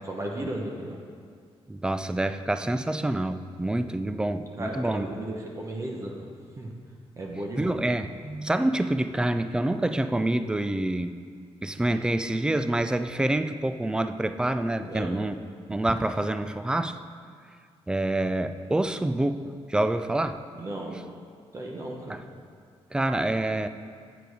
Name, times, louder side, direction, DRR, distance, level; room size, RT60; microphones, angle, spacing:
voice 1, 0.0-1.0 4.6-6.3 6.6-6.7 7.2-7.8 14.9-15.1 20.6-21.0 21.5-22.2, right 1 dB, 30° right, 0 dB, 0.9 m, -34 dB
voice 2, 1.7-5.1 7.6-11.2 11.6-15.4 15.7-17.0 17.9-20.4 22.1-22.2 22.9-23.7, right 1 dB, 10° right, 10 dB, 0.3 m, -27 dB
8.3 x 6.7 x 4.8 m, 2.1 s
cardioid pair, 125°, 11 cm